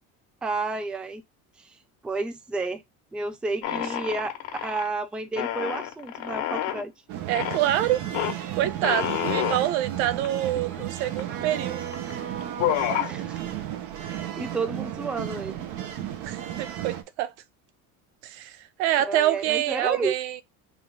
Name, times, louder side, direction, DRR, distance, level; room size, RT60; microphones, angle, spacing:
voice 1, 0.4-1.2 2.0-2.8 3.1-4.4 4.6-6.9 13.0-13.4 14.1-15.6 19.0-20.2, right 3 dB, 5° right, 0.3 m, -31 dB
sound 1, 3.6-4.9 5.3-6.8 7.3-7.6 8.1-8.3 8.8-9.6 10.2-10.3 10.6-11.3 11.9-12.1 12.4-13.1, left 11 dB, 85° left, 1.3 m, -28 dB
sound 2, 7.1-17.0, right 11 dB, 60° right, 0.9 m, -34 dB
voice 2, 7.3-8.0 8.6-11.8 16.2-17.3 18.2-20.4, right 13 dB, 90° right, 0.7 m, -26 dB
3.7 x 2.6 x 4.5 m
cardioid pair, 145°, 33 cm